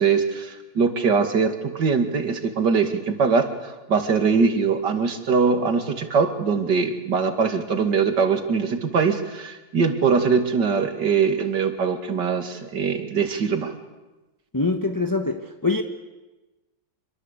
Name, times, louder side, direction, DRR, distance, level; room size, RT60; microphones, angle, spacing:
voice 1, 0.0-13.7, right 5 dB, 70° right, 7 dB, 2.8 m, -22 dB
voice 2, 14.5-15.8, left 3 dB, 15° left, 5 dB, 1.1 m, -24 dB
26.5 x 23.0 x 8.2 m, 1.1 s
omnidirectional pair, 1.9 m